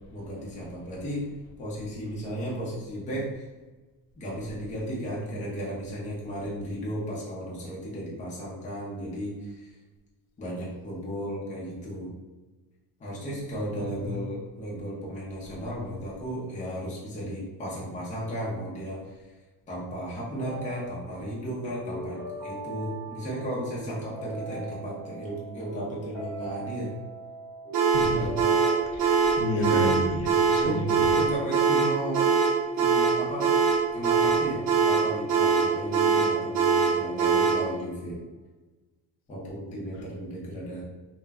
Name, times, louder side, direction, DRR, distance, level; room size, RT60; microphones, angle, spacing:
voice 1, 0.1-1.3 1.6-3.4 4.1-9.7 10.4-12.1 13.0-19.3 19.7-26.9 28.0-28.4 29.5-30.0 30.6-32.3 32.7-33.5 33.9-38.2 39.3-40.8, equal, 20° left, -6 dB, 0.6 m, -35 dB
voice 2, 13.8-14.2 27.9-28.2 28.9-30.7, left 1 dB, 60° left, 2 dB, 0.6 m, -31 dB
sound 1, 20.3-29.4, right 2 dB, 5° right, 1.2 m, -41 dB
sound 2, 27.7-37.7, right 5 dB, 55° right, 0.6 m, -22 dB
2.2 x 2.1 x 3.4 m, 1.2 s
cardioid pair, 160°, 41 cm